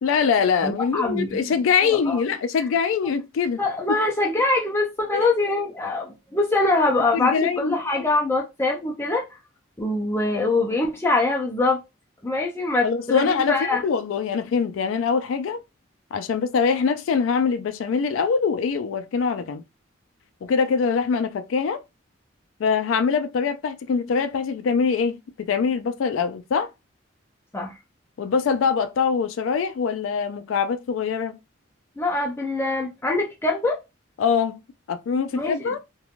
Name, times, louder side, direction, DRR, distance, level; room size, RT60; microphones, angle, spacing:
voice 1, 0.0-3.6 3.9-4.0 5.1-5.3 7.1-7.8 12.8-15.6 16.1-19.6 20.4-21.8 22.6-26.7 28.2-31.4 34.2-34.6 34.9-35.8, left 6 dB, 85° left, 0.3 m, -23 dB
voice 2, 0.6-1.5 1.8-2.2 3.6-9.2 9.8-11.8 12.2-13.8 27.5-27.7 32.0-33.8 35.3-35.7, left 2 dB, 15° left, 0.4 m, -23 dB
3.0 x 2.2 x 2.4 m
head